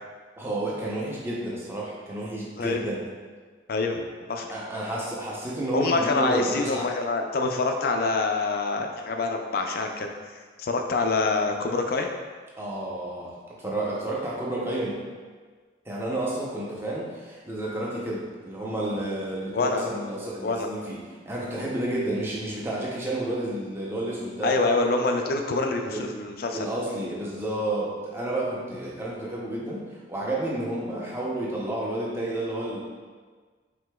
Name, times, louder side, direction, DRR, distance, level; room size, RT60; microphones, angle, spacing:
voice 1, 0.4-3.0 4.5-6.9 12.6-15.0 15.9-24.6 25.9-26.0 26.5-32.8, right 1 dB, 10° right, -5 dB, 0.6 m, -31 dB
voice 2, 3.7-4.5 5.7-12.1 19.5-19.9 20.4-20.7 24.4-26.7, left 3 dB, 50° left, 4 dB, 0.4 m, -26 dB
4.9 x 3.6 x 2.3 m, 1.5 s
head